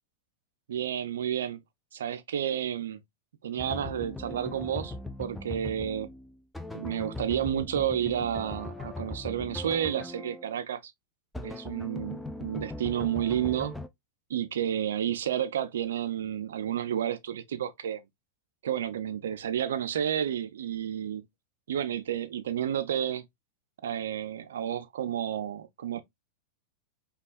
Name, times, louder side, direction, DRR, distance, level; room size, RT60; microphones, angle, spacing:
voice 1, 0.7-1.6 1.9-3.0 3.4-4.9 5.2-6.1 6.7-10.9 11.4-13.8 14.3-18.0 18.6-21.3 21.7-23.2 23.8-26.0, right 10 dB, 60° right, 0.5 m, -31 dB
sound 1, 3.6-10.6 11.3-13.9, left 2 dB, 5° left, 0.4 m, -39 dB
5.3 x 2.3 x 2.4 m
figure-of-eight pair, 90°, 0 cm